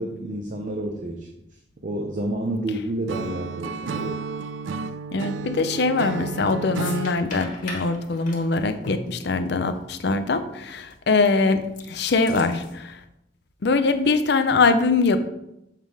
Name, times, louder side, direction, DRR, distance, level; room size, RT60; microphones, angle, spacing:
voice 1, 0.0-4.2, right 1 dB, 45° right, 3 dB, 0.6 m, -30 dB
Acoustic guitar / Strum, 3.1-7.2, right 4 dB, 80° right, 0.3 m, -32 dB
voice 2, 5.1-13.0 13.6-15.2, left 3 dB, 65° left, 10 dB, 0.6 m, -22 dB
sound 1, 6.1-6.4 6.8-9.8 10.1-10.2 10.9-11.3 11.6-12.7, left 3 dB, 45° left, 1.6 m, -39 dB
7.4 x 3.6 x 4.8 m, 0.84 s
head